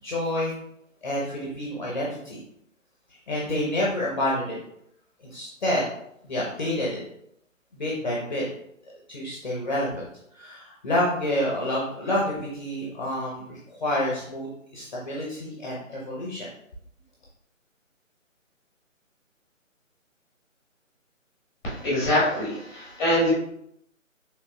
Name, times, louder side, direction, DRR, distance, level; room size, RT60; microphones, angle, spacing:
voice 1, 0.0-0.5 1.0-2.4 3.1-4.6 5.3-5.9 6.2-7.0 7.7-8.4 8.8-10.0 10.3-16.5, left 1 dB, 35° left, -4 dB, 0.9 m, -28 dB
voice 2, 21.6-23.3, equal, 5° left, -8 dB, 1.5 m, -24 dB
5.3 x 3.4 x 2.3 m, 0.73 s
figure-of-eight pair, 150°, 40 cm